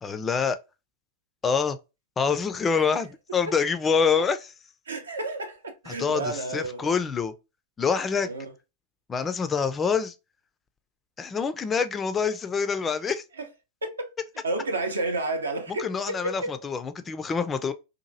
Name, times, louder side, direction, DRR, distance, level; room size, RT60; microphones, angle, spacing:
voice 1, 0.0-0.6 1.4-1.8 2.2-4.4 5.9-7.3 7.8-8.3 9.1-10.1 11.2-13.2 15.8-17.7, left 6 dB, 20° left, 0.3 m, -26 dB
voice 2, 4.9-6.9 8.2-8.5 13.4-13.5 13.8-14.1 14.4-16.6, right 2 dB, 75° right, 0.5 m, -31 dB
2.8 x 2.4 x 2.5 m
figure-of-eight pair, 90°, 0 cm